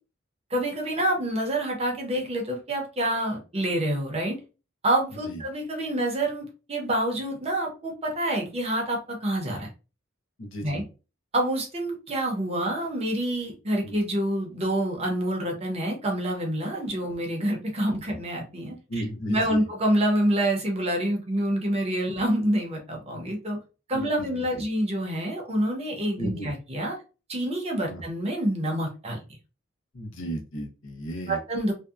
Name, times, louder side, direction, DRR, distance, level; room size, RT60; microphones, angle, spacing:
voice 1, 0.5-4.4 4.8-9.7 10.6-10.8 11.3-18.7 19.3-23.6 23.9-27.0 27.3-29.2 31.3-31.7, right 1 dB, 30° right, 0 dB, 0.7 m, -27 dB
voice 2, 10.4-10.8 13.8-14.0 18.9-19.7 23.9-24.6 26.2-26.5 27.9-28.0 29.9-31.4, right 1 dB, 75° left, 1 dB, 0.7 m, -35 dB
2.6 x 2.2 x 2.3 m, 0.32 s
head